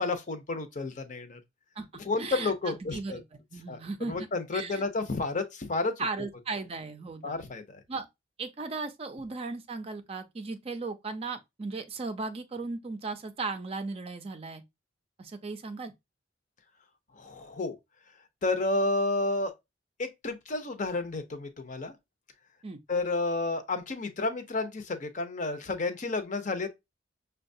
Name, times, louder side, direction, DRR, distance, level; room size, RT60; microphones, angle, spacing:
voice 1, 0.0-1.4 2.0-3.2 3.7-3.8 4.1-6.0 7.2-7.6 17.2-17.7 18.4-19.5 20.0-21.9 22.9-26.7, left 3 dB, 45° left, 0.6 m, -31 dB
voice 2, 2.2-3.2 3.5-4.3 4.5-4.8 6.0-7.3 7.9-8.1 8.4-14.6 15.2-15.9 22.6-22.8, right 3 dB, 30° right, 0.4 m, -36 dB
5.6 x 2.2 x 2.6 m
head